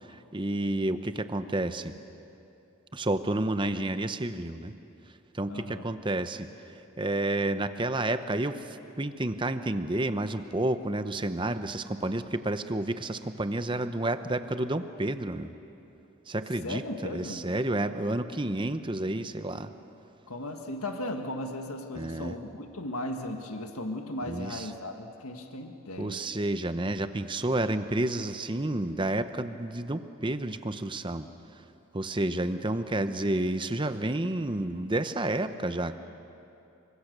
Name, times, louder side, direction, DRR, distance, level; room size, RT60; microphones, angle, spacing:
voice 1, 0.0-1.9 2.9-4.7 5.3-6.5 7.0-8.6 9.0-15.5 16.3-16.8 17.1-19.7 21.9-22.3 24.3-24.7 26.0-31.3 31.9-36.0, right 1 dB, 20° right, 10 dB, 0.8 m, -30 dB
voice 2, 5.5-5.8 16.6-17.5 20.3-26.2, left 1 dB, 85° left, 4 dB, 1.6 m, -36 dB
28.0 x 25.0 x 6.7 m, 2.8 s
head